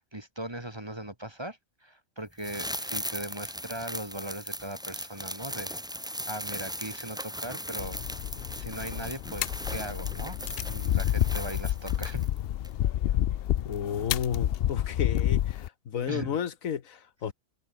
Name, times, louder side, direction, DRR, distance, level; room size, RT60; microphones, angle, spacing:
voice 1, 0.0-5.8 6.3-8.1 8.3-10.4 10.7-12.2 16.1-16.4, right 1 dB, 20° right, 2.0 m, -39 dB
sound 1, 2.4-12.4 12.6-12.7, equal, 5° right, 4.6 m, -38 dB
sound 2, 7.8-15.7, left 12 dB, 65° left, 0.6 m, -29 dB
voice 2, 13.6-17.3, left 8 dB, 80° left, 1.6 m, -32 dB
omnidirectional pair, 1.4 m